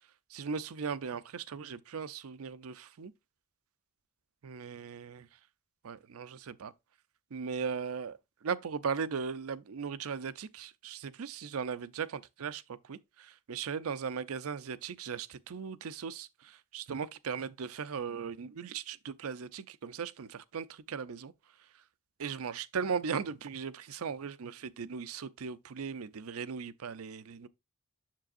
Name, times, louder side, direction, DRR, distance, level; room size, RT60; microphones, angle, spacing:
voice 1, 0.3-3.1 4.4-5.3 5.8-6.7 7.3-21.3 22.2-27.5, right 6 dB, 75° right, 0.5 m, -38 dB
7.4 x 6.8 x 2.5 m
head